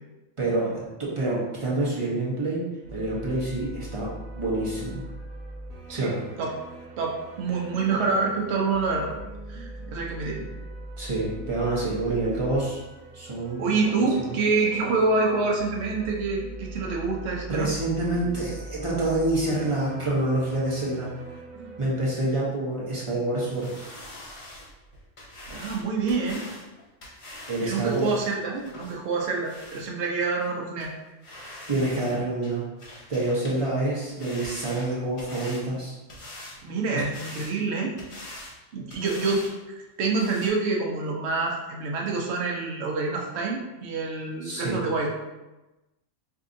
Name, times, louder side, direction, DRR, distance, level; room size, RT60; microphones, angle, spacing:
voice 1, 0.4-2.6 2.9-5.0 5.9-6.2 11.0-12.8 13.1-13.6 14.2-14.3 17.5-21.1 21.8-23.8 27.5-28.0 31.7-32.6 33.1-36.0 36.9-37.0 44.4-44.8, right 2 dB, 30° right, -6 dB, 0.7 m, -27 dB
sound 1, 2.8-21.9, right 1 dB, 85° right, 1.0 m, -41 dB
voice 2, 5.9-6.5 7.0-9.1 9.5-10.5 12.0-12.1 13.6-17.7 25.5-26.5 27.6-30.9 36.6-37.9 38.7-39.5 40.0-45.2, right 4 dB, 60° right, -1 dB, 0.9 m, -27 dB
sound 2, 23.5-29.9 30.4-30.5 30.8-30.9 31.2-32.2 32.4-33.6 33.9-35.6 36.1-36.6 37.0-37.5 38.0-38.6 38.9-39.5 39.8-39.9 40.1-40.5, left 1 dB, 35° left, 0.6 m, -43 dB
4.7 x 2.6 x 2.6 m, 1.1 s
omnidirectional pair, 1.4 m